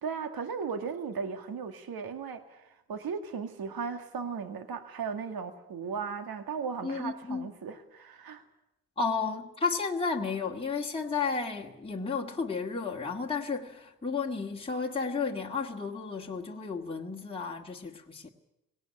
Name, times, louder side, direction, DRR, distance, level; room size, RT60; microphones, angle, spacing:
voice 1, 0.0-8.4, right 6 dB, 55° right, 2.0 m, -36 dB
voice 2, 6.8-7.5 9.0-18.3, left 4 dB, 15° left, 1.9 m, -32 dB
18.0 x 18.0 x 10.0 m
hypercardioid pair, 50°, 42 cm